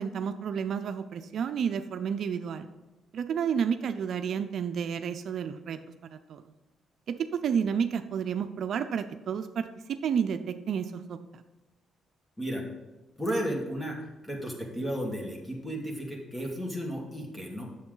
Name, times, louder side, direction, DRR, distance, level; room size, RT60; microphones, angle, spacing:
voice 1, 0.0-2.7 3.1-6.4 7.4-9.7 10.0-11.4, right 7 dB, 65° right, 8 dB, 0.5 m, -31 dB
voice 2, 13.2-14.0 14.2-17.6, equal, 15° left, 0 dB, 2.2 m, -33 dB
8.5 x 7.1 x 3.9 m, 1.1 s
cardioid pair, 90°, 0 cm